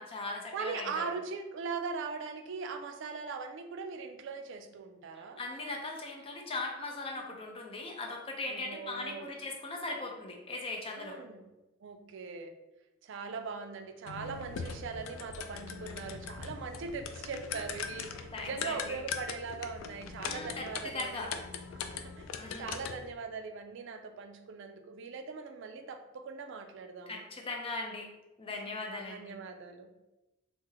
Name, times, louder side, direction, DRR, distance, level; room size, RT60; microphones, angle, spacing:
voice 1, 0.0-1.1 5.4-11.2 18.1-19.0 20.3-21.3 22.4-22.8 27.1-28.1 28.4-29.4, left 2 dB, 30° left, 1 dB, 0.5 m, -39 dB
voice 2, 0.5-5.4 7.1-7.4 8.5-9.3 10.9-11.5 11.8-12.5 13.0-21.3 22.0-22.3 22.6-27.2 28.5-28.8 29.1-29.9, right 4 dB, 65° right, 6 dB, 0.4 m, -40 dB
sound 1, 14.1-23.1, left 6 dB, 85° left, 0.3 m, -41 dB
3.1 x 2.0 x 3.4 m, 0.99 s
head